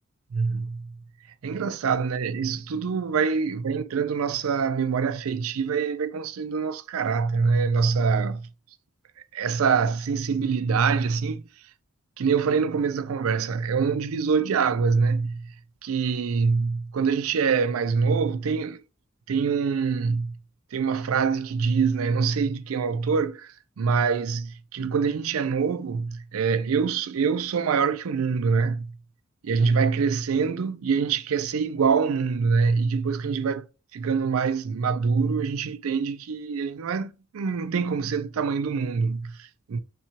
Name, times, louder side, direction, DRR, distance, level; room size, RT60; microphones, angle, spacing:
voice 1, 0.3-0.9 1.4-8.5 9.3-11.5 12.2-15.5 15.8-18.8 19.3-20.4 20.7-28.9 29.4-33.7 33.9-39.8, right 5 dB, 85° right, 0.4 m, -25 dB
5.7 x 2.3 x 2.8 m
head